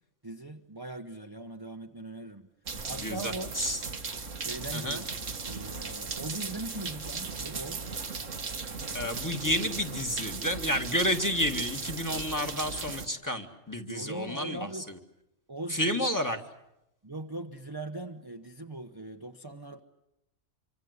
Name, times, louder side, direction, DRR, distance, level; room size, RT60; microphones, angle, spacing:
voice 1, 0.2-2.5 2.9-3.6 4.4-5.1 5.4-7.8 13.9-14.9 15.5-16.1 17.0-19.8, right 2 dB, 20° right, 4 dB, 1.0 m, -40 dB
sound 1, 2.6-13.1, right 4 dB, 85° right, 2.0 m, -37 dB
voice 2, 2.9-3.8 4.7-5.0 8.9-15.0 15.7-16.4, equal, 15° left, 4 dB, 2.0 m, -30 dB
26.5 x 25.5 x 8.1 m, 0.86 s
omnidirectional pair, 1.3 m